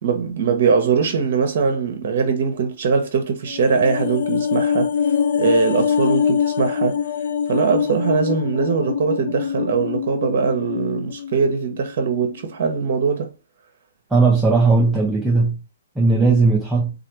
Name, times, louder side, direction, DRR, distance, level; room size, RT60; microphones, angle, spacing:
voice 1, 0.0-4.9 5.4-7.0 7.5-13.3, right 5 dB, 50° right, 0.7 m, -21 dB
sound 1, 3.5-11.9 12.2-12.3, left 7 dB, 55° left, 0.3 m, -24 dB
voice 2, 14.1-15.6 16.0-16.9, right 3 dB, 5° right, 0.5 m, -17 dB
3.2 x 2.4 x 2.9 m
figure-of-eight pair, 120°, 0 cm